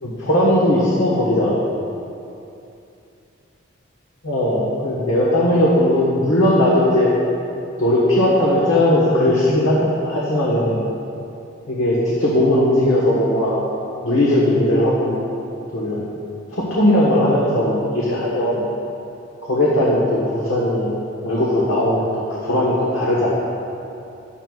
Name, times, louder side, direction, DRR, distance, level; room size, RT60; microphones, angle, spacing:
voice 1, 0.0-1.6 4.2-7.1 7.8-9.8 10.0-10.8 11.7-13.6 14.0-15.2 15.7-16.1 16.5-18.6 19.4-20.9 21.2-23.4, left 1 dB, 85° left, -6 dB, 1.4 m, -18 dB
12.0 x 10.0 x 2.5 m, 2.7 s
head